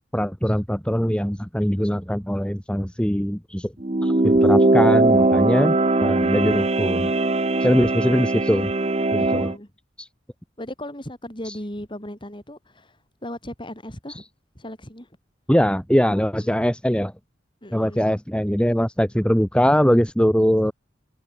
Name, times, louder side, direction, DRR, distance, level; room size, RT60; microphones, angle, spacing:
voice 1, 0.1-3.7 4.0-7.1 7.6-8.7 9.1-9.5 10.0-10.1 11.4-11.6 14.1-14.2 15.5-17.1 17.7-20.7, equal, 5° left, 2.3 m, -22 dB
sound 1, 3.8-9.5, right 2 dB, 30° right, 0.9 m, -20 dB
voice 2, 9.2-9.7 10.6-13.0 13.2-14.2 14.5-15.1 16.4-16.6 17.6-18.1, left 1 dB, 25° left, 6.1 m, -37 dB
head